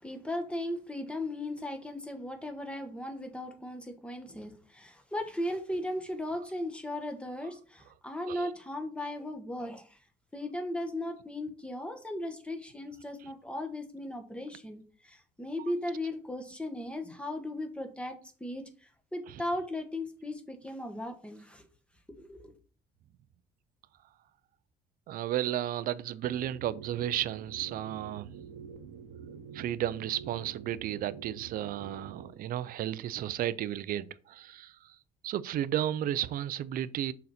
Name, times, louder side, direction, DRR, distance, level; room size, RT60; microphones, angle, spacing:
voice 1, 0.0-10.0 10.3-21.7 22.2-22.6, left 1 dB, 5° left, 1.2 m, -37 dB
voice 2, 25.1-28.3 29.5-34.7 35.2-37.1, right 12 dB, 60° right, 0.4 m, -33 dB
sound 1, 26.3-32.3, right 7 dB, 85° right, 0.9 m, -47 dB
6.3 x 4.1 x 4.2 m
cardioid pair, 110°, 17 cm